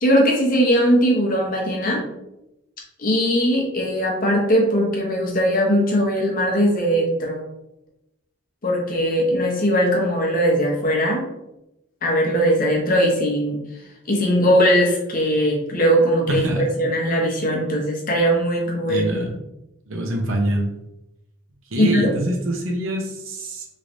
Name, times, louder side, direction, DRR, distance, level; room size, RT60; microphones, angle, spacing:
voice 1, 0.0-2.1 3.0-7.4 8.6-11.2 12.0-13.6 14.1-19.0 21.8-22.1, equal, 40° left, -2 dB, 0.8 m, -20 dB
voice 2, 16.3-16.7 18.9-19.3 19.9-20.7 21.7-23.7, right 1 dB, 75° right, 1 dB, 0.7 m, -24 dB
3.2 x 3.1 x 2.6 m, 0.91 s
head